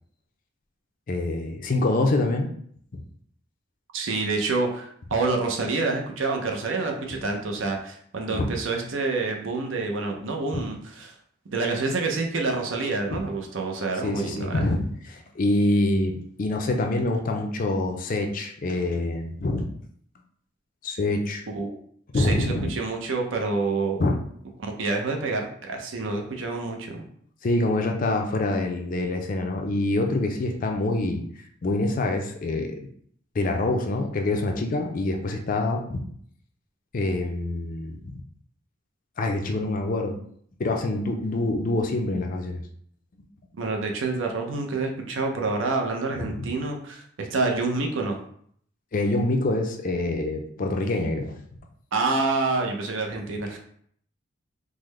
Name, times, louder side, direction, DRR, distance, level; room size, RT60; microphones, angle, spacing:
voice 1, 1.1-2.5 2.9-3.0 8.3-8.5 10.5-10.7 13.1-13.2 14.0-19.7 20.8-21.4 22.1-22.7 24.0-24.2 27.4-31.2 31.6-32.9 33.3-36.0 36.9-38.2 39.2-40.2 40.6-42.6 46.2-46.4 48.9-51.3, left 2 dB, 45° left, 3 dB, 0.4 m, -25 dB
voice 2, 3.9-11.1 11.5-14.7 21.5-21.8 22.1-24.0 24.6-27.1 43.6-48.2 51.9-53.6, right 3 dB, 75° right, 2 dB, 0.6 m, -27 dB
3.7 x 2.1 x 3.1 m, 0.62 s
head